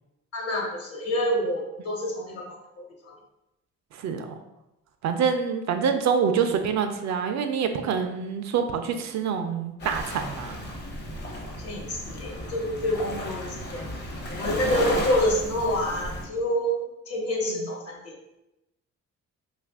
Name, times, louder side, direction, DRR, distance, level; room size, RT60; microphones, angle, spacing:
voice 1, 0.3-2.6 3.0-3.1 11.6-13.8 14.3-18.1, equal, 50° left, -1 dB, 1.1 m, -27 dB
voice 2, 4.0-4.4 5.0-10.6 14.7-14.8 17.5-17.7, right 6 dB, 65° right, 7 dB, 0.4 m, -26 dB
Waves surf, 9.8-16.2, left 1 dB, 35° left, 0.8 m, -34 dB
2.8 x 2.4 x 3.4 m, 0.92 s
cardioid pair, 90°, 30 cm